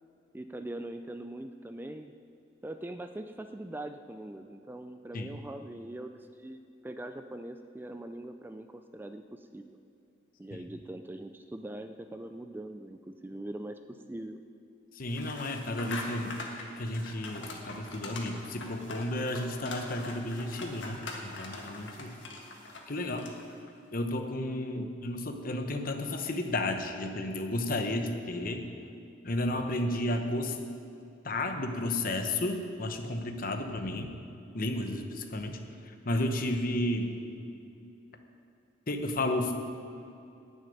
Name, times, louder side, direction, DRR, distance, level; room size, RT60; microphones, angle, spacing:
voice 1, 0.3-2.1 2.6-9.8 10.4-14.4 24.7-24.9, right 1 dB, 10° right, 8 dB, 0.3 m, -42 dB
voice 2, 14.9-22.2 22.9-23.3 23.9-28.6 29.2-30.6 31.2-34.1 34.5-37.2 38.9-39.8, left 1 dB, 50° left, 6 dB, 0.9 m, -32 dB
sound 1, 15.1-23.6, left 2 dB, 70° left, 1.6 m, -43 dB
11.0 x 6.5 x 9.2 m, 2.5 s
head